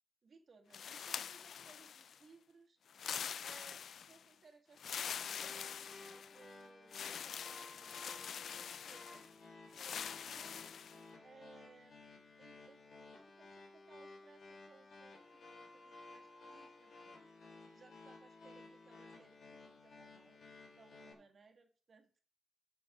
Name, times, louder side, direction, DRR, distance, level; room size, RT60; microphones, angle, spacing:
voice 1, 0.2-3.0 3.4-9.2 9.7-10.0 10.2-10.7 11.2-11.9 12.4-12.8 13.2-17.2 17.7-20.4 20.7-22.2, right 4 dB, 40° right, 4 dB, 1.6 m, -63 dB
sound 1, 0.7-2.2 2.9-4.2 4.8-6.4 6.9-9.3 9.7-11.0, left 8 dB, 70° left, 0.4 m, -44 dB
sound 2, 5.1-21.1, left 3 dB, 55° left, 2.9 m, -56 dB
12.0 x 6.2 x 4.9 m, 0.40 s
wide cardioid pair, 170°, 0 cm